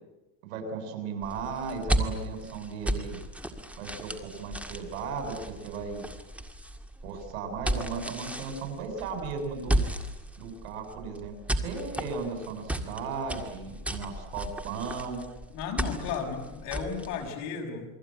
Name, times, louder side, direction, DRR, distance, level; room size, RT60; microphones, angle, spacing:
voice 1, 0.4-3.2 3.8-6.1 7.0-9.8 10.4-15.2, right 5 dB, 85° right, 6 dB, 7.7 m, -36 dB
sound 1, 1.2-17.3, right 1 dB, 5° right, 1.9 m, -34 dB
voice 2, 15.5-17.9, left 6 dB, 50° left, 2 dB, 6.4 m, -34 dB
28.5 x 22.5 x 9.0 m, 0.98 s
supercardioid pair, 155°, 39 cm